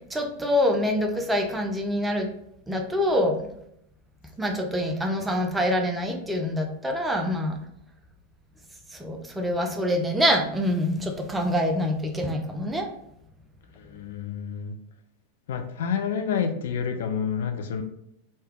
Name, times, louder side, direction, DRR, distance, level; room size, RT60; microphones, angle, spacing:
voice 1, 0.1-2.3 2.7-3.4 4.4-7.6 8.9-12.9, equal, 10° right, 3 dB, 0.5 m, -25 dB
voice 2, 13.7-14.7 15.5-17.8, left 7 dB, 60° left, 6 dB, 0.4 m, -29 dB
3.3 x 2.8 x 3.4 m, 0.75 s
figure-of-eight pair, 90°, 0 cm